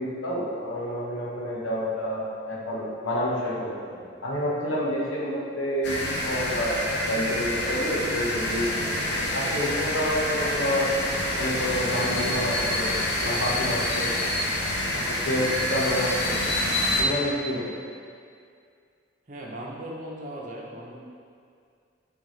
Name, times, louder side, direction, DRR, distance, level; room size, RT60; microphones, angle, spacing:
voice 1, 0.0-6.0 6.2-8.8 9.3-10.9 11.4-12.9 13.2-14.1 14.9-16.4 17.0-17.7, equal, 90° left, -5 dB, 1.1 m, -28 dB
sound 1, 5.8-17.0, left 1 dB, 60° left, 0.8 m, -27 dB
voice 2, 19.3-21.0, right 1 dB, 40° right, -3 dB, 0.8 m, -38 dB
8.6 x 3.6 x 3.2 m, 2.3 s
head